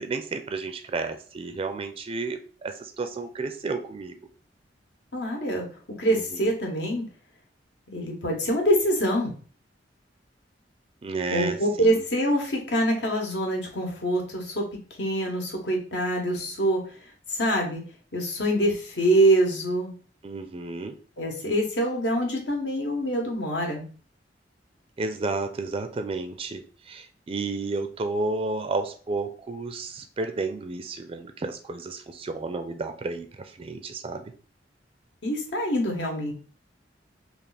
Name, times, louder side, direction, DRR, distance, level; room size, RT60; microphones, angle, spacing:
voice 1, 0.0-4.2 6.3-6.5 11.0-12.0 20.2-21.0 25.0-34.3, right 3 dB, 30° right, 7 dB, 0.4 m, -32 dB
voice 2, 5.1-7.1 7.9-9.3 11.3-16.9 17.3-17.8 18.1-19.9 21.2-23.8 35.2-36.3, right 1 dB, 70° left, 1 dB, 1.1 m, -25 dB
3.3 x 2.4 x 4.0 m, 0.40 s
head